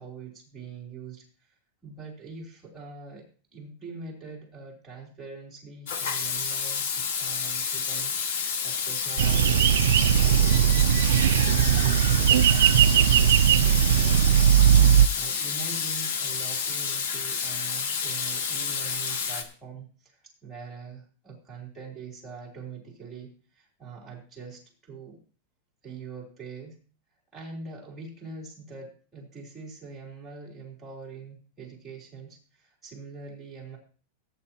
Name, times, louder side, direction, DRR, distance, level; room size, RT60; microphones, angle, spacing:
voice 1, 0.0-1.5 1.8-3.2 3.5-10.5 10.8-14.4 15.2-25.2 25.8-26.8 27.3-33.8, right 5 dB, 10° right, -4 dB, 3.6 m, -43 dB
Water tap faucet / Sink (filling or washing), 5.9-19.4, left 6 dB, 60° left, 1.6 m, -30 dB
sound 1, 9.2-15.1, right 10 dB, 80° right, 0.4 m, -19 dB
18.0 x 9.3 x 2.9 m, 0.39 s
supercardioid pair, 175°, 0 cm